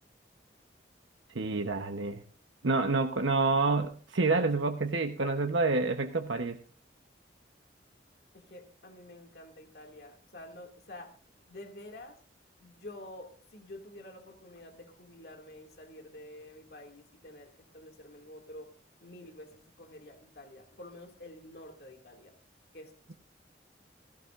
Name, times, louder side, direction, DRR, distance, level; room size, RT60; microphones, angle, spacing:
voice 1, 1.3-2.2 2.6-6.6, right 3 dB, 85° right, 5 dB, 1.0 m, -28 dB
voice 2, 8.3-11.2 11.5-12.2 12.6-18.7 19.0-22.3 22.7-22.9, left 1 dB, 55° left, 3 dB, 2.3 m, -49 dB
17.0 x 16.5 x 2.5 m, 0.40 s
head